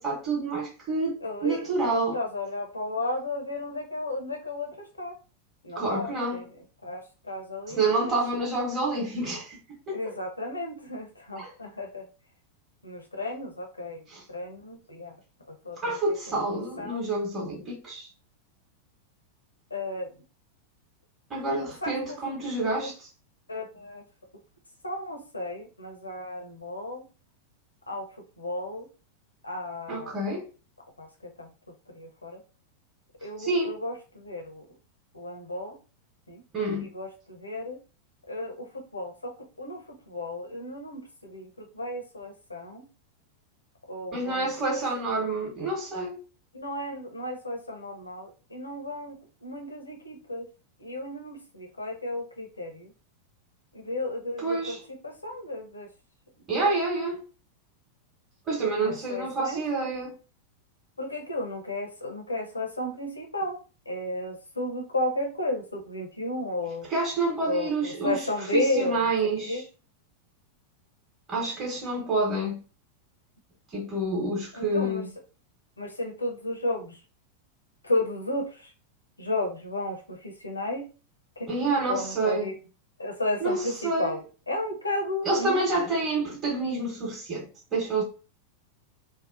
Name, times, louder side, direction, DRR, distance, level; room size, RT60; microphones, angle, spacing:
voice 1, 0.0-2.2 5.7-6.4 7.7-9.6 9.9-10.0 11.4-11.5 14.1-14.2 15.8-18.1 21.3-22.9 29.9-30.5 33.4-33.7 36.5-36.9 44.1-46.2 54.4-54.8 56.5-57.2 58.5-60.2 66.9-68.2 68.5-69.6 71.3-72.6 73.7-75.0 81.5-82.5 83.4-84.1 85.2-88.0, right 2 dB, 20° right, 1.0 m, -28 dB
voice 2, 1.2-5.2 5.6-6.5 6.8-8.1 9.9-12.1 12.8-15.2 15.5-16.0 16.3-17.0 19.7-20.1 21.8-22.9 23.5-24.0 24.8-27.0 27.9-28.9 29.4-30.2 31.0-31.5 31.9-32.4 33.2-34.7 35.1-35.8 36.3-36.4 36.8-37.8 38.3-42.8 43.9-44.8 46.5-49.1 49.4-50.5 50.8-52.9 53.7-54.8 55.0-55.9 56.6-56.7 58.8-59.6 61.0-63.6 63.9-66.9 67.4-69.1 69.4-69.6 74.5-75.0 75.8-77.0 77.8-78.7 79.2-80.9 81.4-81.5 81.9-82.6 83.0-85.7, left 1 dB, 80° left, 0.6 m, -33 dB
2.7 x 2.0 x 2.5 m
figure-of-eight pair, 90°, 0 cm